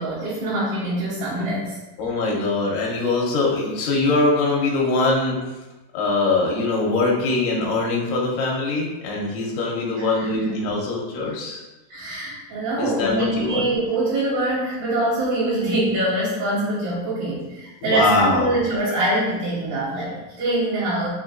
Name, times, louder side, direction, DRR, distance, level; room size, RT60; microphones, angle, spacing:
voice 1, 0.0-1.8 10.0-10.1 10.4-10.5 11.9-21.1, right 1 dB, 80° right, -9 dB, 2.8 m, -24 dB
voice 2, 2.0-5.4 5.9-11.6 12.8-13.7 17.8-18.5, left 3 dB, 80° left, -3 dB, 2.1 m, -22 dB
5.8 x 2.5 x 2.5 m, 1.1 s
omnidirectional pair, 4.2 m